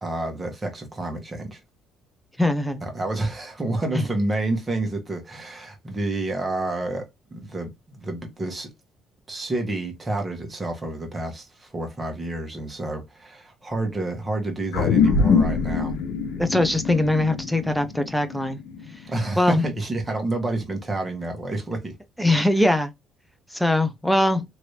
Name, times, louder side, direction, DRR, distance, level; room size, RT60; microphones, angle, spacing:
voice 1, 0.0-1.6 2.8-7.1 7.3-8.7 9.3-15.9 19.1-21.9, right 2 dB, 20° right, 1.2 m, -29 dB
voice 2, 2.4-2.8 3.9-4.1 16.4-18.6 19.4-19.7 22.2-22.9 23.5-24.4, left 1 dB, ahead, 0.6 m, -21 dB
sound 1, 14.7-19.5, left 5 dB, 85° left, 0.8 m, -24 dB
3.0 x 2.6 x 3.2 m
cardioid pair, 125°, 0 cm